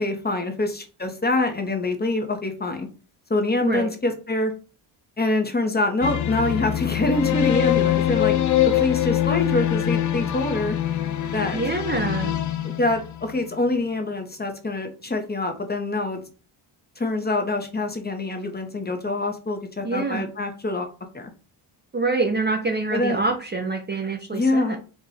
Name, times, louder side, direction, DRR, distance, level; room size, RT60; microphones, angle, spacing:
voice 1, 0.0-2.9 3.3-4.5 5.2-8.4 8.7-10.8 11.3-11.6 12.8-16.2 17.0-20.9 21.1-21.3 22.9-23.2 24.3-24.8, left 2 dB, 20° left, 5 dB, 1.1 m, -25 dB
sound 1, 6.0-13.5, left 12 dB, 40° left, 0.5 m, -23 dB
voice 2, 11.5-12.4 19.8-20.3 21.9-24.8, right 3 dB, 20° right, 3 dB, 0.7 m, -26 dB
4.8 x 2.6 x 4.2 m, 0.35 s
cardioid pair, 90°, 49 cm